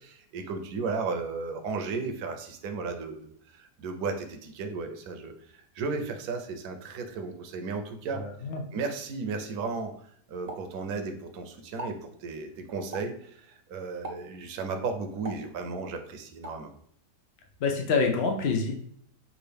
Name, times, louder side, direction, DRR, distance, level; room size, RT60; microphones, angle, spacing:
voice 1, 0.0-8.2 8.7-9.9 10.3-16.7, right 4 dB, 75° right, 6 dB, 1.2 m, -34 dB
voice 2, 8.2-8.6 17.6-18.7, left 4 dB, 55° left, 2 dB, 0.8 m, -26 dB
Explosion, 10.5-11.3 11.6-12.1 12.9-13.3 14.0-14.4 15.2-15.9 16.4-16.7, right 1 dB, 40° right, 0.6 m, -41 dB
6.3 x 2.5 x 3.4 m, 0.65 s
omnidirectional pair, 1.7 m